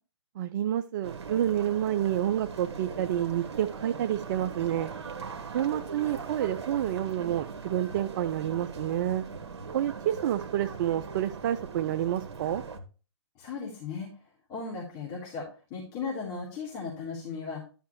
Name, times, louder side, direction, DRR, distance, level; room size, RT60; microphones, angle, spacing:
voice 1, 0.4-4.9 5.5-9.2 9.7-12.6, right 11 dB, 40° right, 11 dB, 0.4 m, -29 dB
sound 1, 1.0-12.8, right 5 dB, 60° right, 1.3 m, -40 dB
sound 2, 4.5-12.9, left 1 dB, 80° left, 2.0 m, -48 dB
voice 2, 13.4-14.1 14.5-17.6, left 5 dB, 35° left, -6 dB, 3.6 m, -36 dB
11.0 x 5.7 x 3.1 m, 0.35 s
figure-of-eight pair, 130°, 15 cm